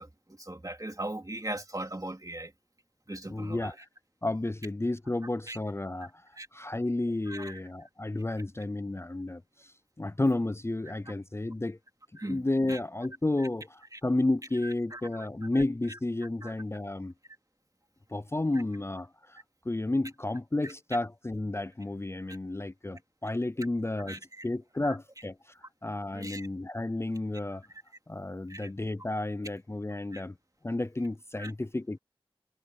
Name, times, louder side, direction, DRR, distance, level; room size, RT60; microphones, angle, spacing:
voice 1, 0.0-2.5 3.1-3.7 5.5-5.6 6.4-6.5 7.3-7.6 12.2-12.4 12.7-12.8 13.9-14.0 14.9-15.3 16.4-16.5 24.1-24.4 24.8-24.9 26.1-26.5 28.5-28.7 30.1-30.2 31.4-31.5, right 1 dB, 40° right, 2.9 m, -39 dB
voice 2, 3.3-3.9 4.2-11.8 12.3-17.1 18.1-27.6 28.1-30.4 30.6-32.0, left 2 dB, 25° left, 0.4 m, -32 dB
wide cardioid pair, 50°, 10 cm